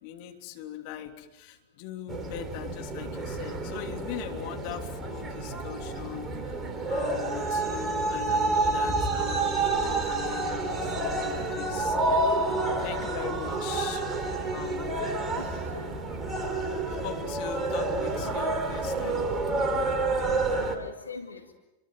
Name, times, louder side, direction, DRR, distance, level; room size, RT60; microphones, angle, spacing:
voice 1, 0.0-6.6 6.9-12.0 12.3-12.4 12.8-14.0 14.5-15.1 16.7-19.4, left 11 dB, 45° left, 4 dB, 3.3 m, -40 dB
sound 1, 2.1-20.8, right 2 dB, 20° right, 3.7 m, -29 dB
voice 2, 13.7-14.1 14.9-15.4 15.7-16.0 20.6-21.5, left 3 dB, 75° left, 5 dB, 2.1 m, -42 dB
28.5 x 24.0 x 7.7 m, 0.99 s
figure-of-eight pair, 90°, 0 cm